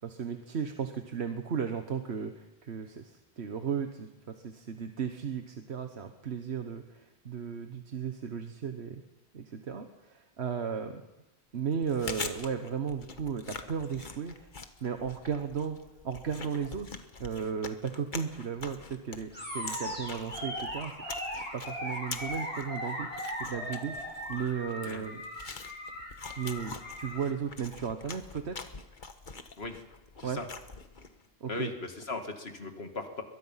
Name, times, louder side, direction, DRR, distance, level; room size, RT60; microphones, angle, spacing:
voice 1, 0.0-9.0 9.3-11.0 11.5-14.5 14.8-15.8 16.0-20.9 21.4-25.2 26.4-28.5 30.2-30.4 31.4-31.7, right 7 dB, 85° right, 7 dB, 1.5 m, -35 dB
Chewing mastication, 11.7-31.2, left 4 dB, 50° left, 1.4 m, -45 dB
Animal, 19.3-27.3, equal, 10° left, 5.9 m, -38 dB
voice 2, 31.5-33.2, left 3 dB, 75° left, 5 dB, 2.5 m, -38 dB
22.0 x 22.0 x 5.8 m, 0.98 s
omnidirectional pair, 1.1 m